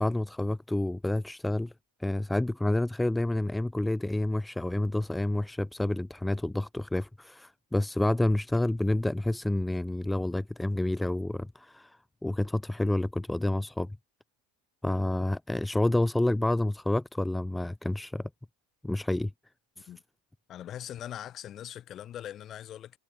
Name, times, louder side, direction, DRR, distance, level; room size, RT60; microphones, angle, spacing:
voice 1, 0.0-1.7 2.0-13.9 14.8-18.3 18.8-19.3 19.8-19.9, left 1 dB, 5° left, 0.4 m, -29 dB
voice 2, 20.5-23.0, left 11 dB, 35° left, 2.0 m, -41 dB
supercardioid pair, 130°, 0 cm